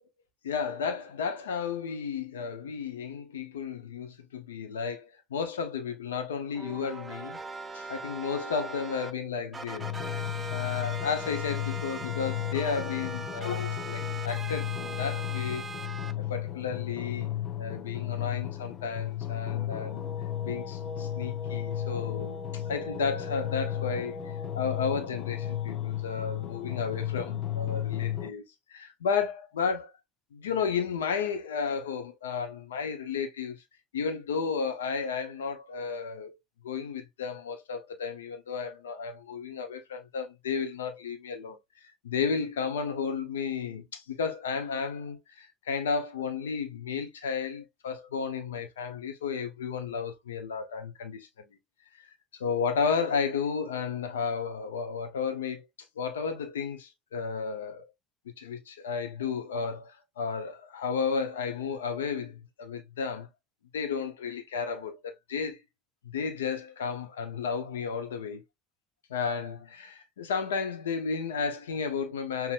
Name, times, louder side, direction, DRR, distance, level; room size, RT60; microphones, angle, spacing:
voice 1, 0.4-7.4 7.7-9.9 10.5-15.6 16.2-17.3 17.6-20.0 20.4-24.2 24.5-28.4 28.7-29.9 30.3-33.6 33.9-36.3 36.6-51.3 52.0-55.7 56.0-57.9 58.4-63.3 63.7-65.6 66.1-68.4 69.1-72.5, left 6 dB, 85° left, 0.8 m, -33 dB
sound 1, 6.5-9.1 9.5-16.1, right 4 dB, 25° right, 0.7 m, -40 dB
sound 2, 9.8-28.3, left 11 dB, 50° left, 0.9 m, -34 dB
5.6 x 2.9 x 2.4 m
hypercardioid pair, 70°, 0 cm